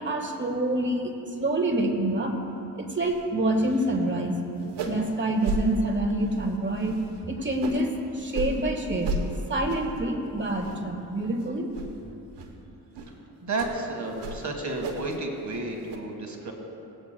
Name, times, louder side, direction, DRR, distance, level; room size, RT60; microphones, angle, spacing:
voice 1, 0.0-2.3 2.7-4.4 4.8-11.7, right 1 dB, 25° right, 2 dB, 1.5 m, -27 dB
sound 1, 3.0-3.2 3.5-4.0 4.2-4.3 4.6-5.1 5.4-5.6 6.1-6.4 6.8-7.9 8.3-8.6 9.0-9.2 9.7-10.0 10.4-11.0 11.2-11.4 11.7-11.9 12.4-12.5 12.9-13.1 13.6-13.7 14.2-15.2 15.5-16.0, right 2 dB, 90° right, 1.0 m, -34 dB
voice 2, 13.4-16.5, right 2 dB, 45° right, 2 dB, 1.6 m, -31 dB
17.0 x 8.9 x 2.2 m, 2.8 s
cardioid pair, 60°, 41 cm